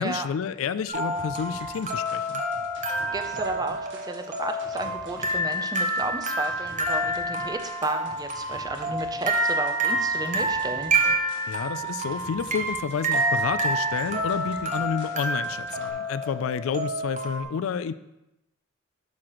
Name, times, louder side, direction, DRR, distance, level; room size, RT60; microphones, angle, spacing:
voice 1, 0.0-2.4 11.5-17.9, left 6 dB, 70° left, 14 dB, 0.3 m, -30 dB
sound 1, 0.9-17.4, right 1 dB, 35° right, 0.9 m, -28 dB
sound 2, 1.1-15.9, right 1 dB, 60° right, 1.5 m, -47 dB
voice 2, 3.1-10.9, right 2 dB, 20° right, 7 dB, 0.5 m, -33 dB
11.0 x 5.8 x 3.0 m, 0.92 s
head